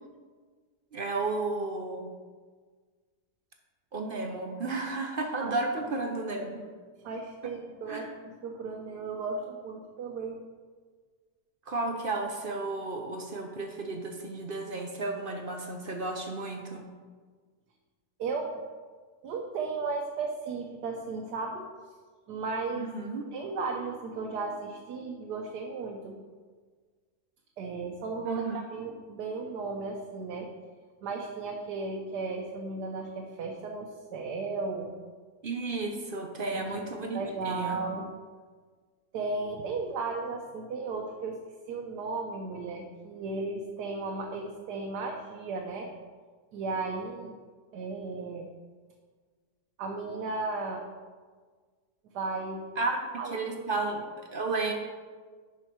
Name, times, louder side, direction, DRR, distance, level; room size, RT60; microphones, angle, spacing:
voice 1, 0.9-2.1 3.9-6.6 7.9-8.1 11.7-16.8 22.7-23.2 28.2-28.6 35.4-37.8 52.8-53.0 53.3-54.7, right 3 dB, 50° right, 3 dB, 0.6 m, -33 dB
voice 2, 7.0-10.4 18.2-18.6 19.2-21.6 22.3-22.9 23.3-26.2 27.6-28.4 28.7-30.5 31.0-34.9 36.5-36.8 37.1-38.0 39.1-41.4 41.7-45.9 46.5-47.4 47.7-48.5 49.8-50.8 52.1-52.6 53.2-53.6, right 3 dB, 70° right, 1 dB, 1.3 m, -35 dB
10.5 x 5.4 x 4.5 m, 1.5 s
omnidirectional pair, 1.9 m